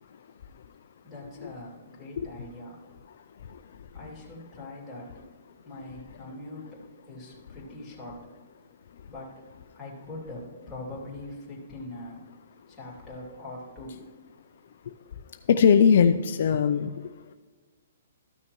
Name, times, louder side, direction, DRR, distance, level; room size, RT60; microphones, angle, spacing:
voice 1, 1.0-2.8 3.9-5.1 5.6-8.3 9.1-9.4 9.7-12.2 12.7-14.0, left 1 dB, 10° left, -7 dB, 2.7 m, -42 dB
voice 2, 15.5-16.9, left 7 dB, 60° left, 8 dB, 0.4 m, -19 dB
13.5 x 6.3 x 3.0 m, 1.4 s
hypercardioid pair, 160°, 0 cm